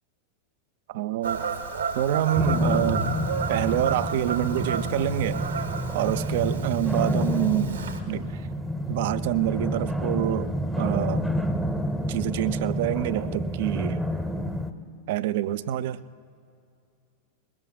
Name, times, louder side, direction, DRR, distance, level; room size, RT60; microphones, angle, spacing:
voice 1, 0.9-1.4 1.9-3.1 3.5-5.4 5.9-8.5 8.9-11.3 12.1-14.0 15.1-16.0, right 13 dB, 50° right, 15 dB, 0.4 m, -27 dB
Fowl / Bird vocalization bird call bird song, 1.2-8.0, right 5 dB, 70° right, 1.2 m, -32 dB
sound 1, 2.3-14.7, equal, ahead, 0.7 m, -29 dB
21.5 x 19.5 x 2.2 m, 2.4 s
figure-of-eight pair, 90°, 0 cm